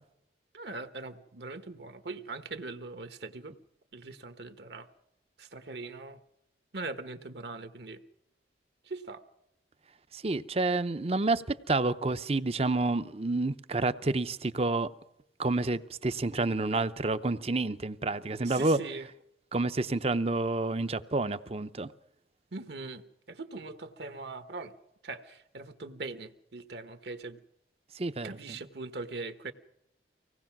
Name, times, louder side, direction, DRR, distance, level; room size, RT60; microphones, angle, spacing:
voice 1, 0.5-3.5 3.9-4.9 5.4-6.2 6.7-8.0 8.8-9.2 18.4-19.1 22.5-24.8 25.0-27.4 28.2-29.5, right 3 dB, 65° right, 1.2 m, -41 dB
voice 2, 10.1-14.9 15.4-18.8 19.5-21.9 27.9-28.3, right 2 dB, 35° right, 0.7 m, -29 dB
24.5 x 18.0 x 6.0 m
head